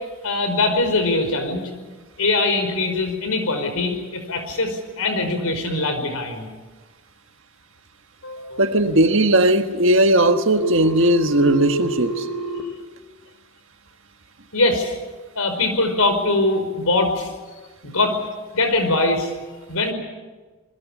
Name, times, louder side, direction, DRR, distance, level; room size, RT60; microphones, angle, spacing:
voice 1, 0.2-1.7 2.2-6.5 8.2-8.7 14.5-14.9 15.3-17.3 17.8-18.2 18.5-19.3 19.7-19.9, left 2 dB, 80° left, 5.0 m, -22 dB
voice 2, 8.6-12.2, right 1 dB, 60° right, 1.6 m, -17 dB
Telephone, 10.6-12.6, right 3 dB, ahead, 6.3 m, -29 dB
27.0 x 21.0 x 7.4 m
head